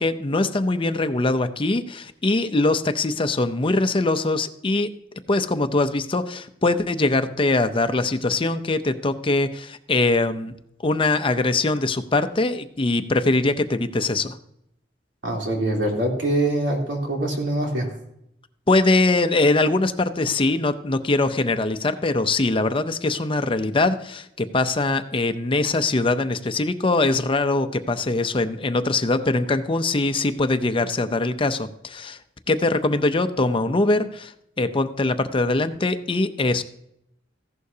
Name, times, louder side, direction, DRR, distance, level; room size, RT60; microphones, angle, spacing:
voice 1, 0.0-4.9 5.3-10.5 10.8-14.4 18.7-32.2 32.5-34.3 34.6-36.6, left 2 dB, 30° left, 10 dB, 0.6 m, -22 dB
voice 2, 15.2-17.9, right 1 dB, 85° right, -1 dB, 3.2 m, -24 dB
15.0 x 11.5 x 2.8 m, 0.78 s
head